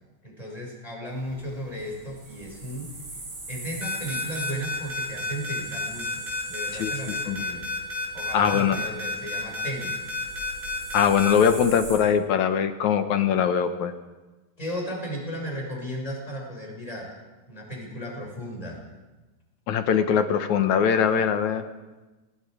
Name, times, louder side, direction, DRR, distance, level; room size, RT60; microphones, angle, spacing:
voice 1, 0.2-3.0 3.5-6.2 6.5-7.7 8.1-10.0 14.6-17.1 17.5-18.8, equal, 10° left, -1 dB, 6.1 m, -35 dB
sound 1, 1.1-12.0, right 2 dB, 60° right, 9.4 m, -42 dB
sound 2, 3.8-11.5, left 2 dB, 20° right, 4.6 m, -31 dB
voice 2, 6.7-7.4 8.3-8.8 10.9-13.9 19.7-21.6, left 7 dB, 65° left, 8 dB, 2.1 m, -22 dB
29.0 x 19.0 x 5.0 m, 1.1 s
omnidirectional pair, 4.2 m